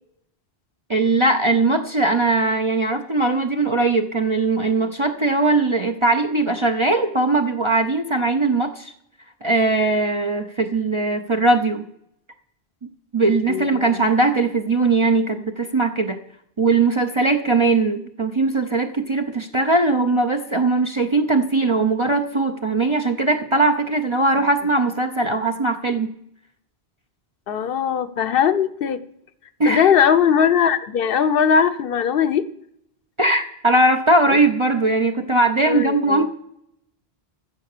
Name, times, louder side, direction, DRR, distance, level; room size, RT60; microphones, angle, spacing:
voice 1, 0.9-8.9 9.4-11.8 13.1-16.2 16.6-26.1 29.6-29.9 33.2-36.3, right 2 dB, 30° right, 3 dB, 0.7 m, -20 dB
voice 2, 13.5-14.1 27.5-29.0 29.7-32.5 34.3-34.4 35.6-36.2, left 7 dB, 60° left, 12 dB, 0.9 m, -19 dB
14.5 x 7.6 x 6.7 m, 0.76 s
omnidirectional pair, 1.1 m